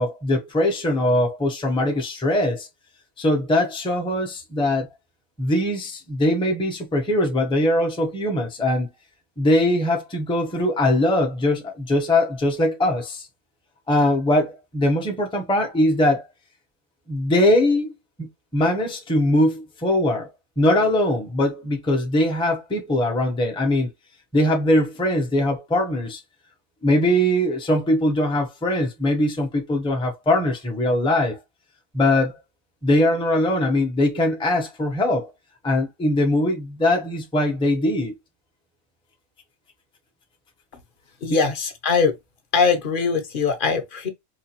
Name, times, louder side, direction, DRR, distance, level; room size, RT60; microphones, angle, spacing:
voice 1, 0.0-2.7 3.2-4.9 5.4-8.9 9.4-13.3 13.9-16.3 17.1-17.9 18.2-20.3 20.6-23.9 24.3-26.2 26.8-31.4 31.9-32.3 32.8-35.3 35.6-38.2 41.3-41.4, left 1 dB, 5° left, 0.5 m, -21 dB
voice 2, 41.2-42.2 42.5-44.1, left 5 dB, 45° left, 0.7 m, -21 dB
4.9 x 2.4 x 2.9 m
omnidirectional pair, 1.6 m